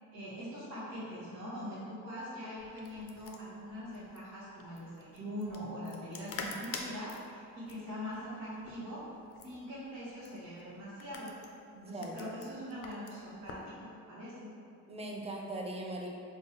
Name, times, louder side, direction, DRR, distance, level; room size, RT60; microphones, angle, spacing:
voice 1, 0.1-9.1 9.4-11.3 11.7-14.5, equal, 75° right, -13 dB, 1.1 m, -42 dB
sound 1, 2.6-13.7, left 4 dB, 50° left, 0.4 m, -48 dB
voice 2, 11.8-12.3 14.9-16.1, right 1 dB, 20° right, -1 dB, 0.5 m, -40 dB
4.2 x 2.3 x 3.0 m, 2.4 s
cardioid pair, 90°, 30 cm